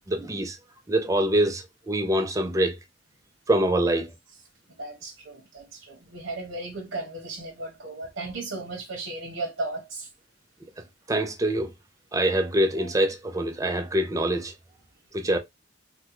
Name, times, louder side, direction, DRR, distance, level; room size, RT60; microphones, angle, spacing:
voice 1, 0.1-0.6 0.9-2.8 3.5-4.1 11.1-11.7 12.1-14.5 15.1-15.4, right 1 dB, 15° right, 0.4 m, -24 dB
voice 2, 4.8-10.1, right 2 dB, 70° right, 0.8 m, -35 dB
3.6 x 2.1 x 2.8 m
head